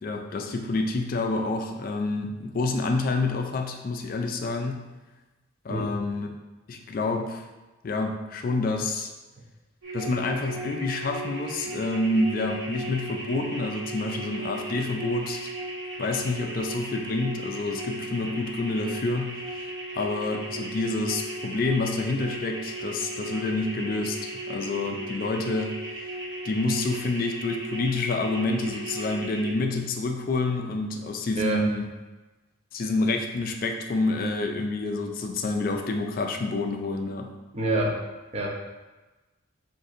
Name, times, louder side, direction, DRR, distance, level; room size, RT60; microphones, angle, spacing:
voice 1, 0.0-4.9 5.6-6.3 6.7-7.5 7.8-9.1 9.9-15.5 16.0-19.7 20.0-26.0 26.4-31.9 32.7-37.3, left 2 dB, 45° left, 4 dB, 0.3 m, -28 dB
sound 1, 9.8-29.5, right 1 dB, 60° right, 1.0 m, -36 dB
voice 2, 31.4-31.7 37.5-38.0 38.3-38.5, right 1 dB, 30° right, 0 dB, 0.5 m, -26 dB
7.5 x 2.5 x 2.5 m, 1.2 s
head